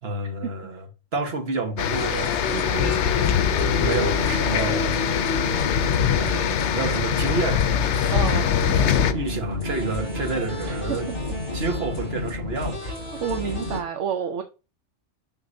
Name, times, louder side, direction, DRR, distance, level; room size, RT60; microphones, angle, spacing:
voice 1, 0.0-0.9 1.1-2.2 2.6-3.5 3.8-5.2 6.2-8.1 8.5-11.0 11.5-12.9, right 3 dB, 55° right, 1.6 m, -30 dB
sound 1, 1.8-9.1, left 8 dB, 70° left, 0.9 m, -23 dB
sound 2, 1.9-13.8, left 2 dB, 45° left, 5.6 m, -31 dB
voice 2, 2.5-3.0 8.1-8.5 10.6-11.0 12.8-12.9 13.2-14.4, right 7 dB, 75° right, 1.1 m, -29 dB
9.8 x 6.5 x 2.7 m
omnidirectional pair, 1.3 m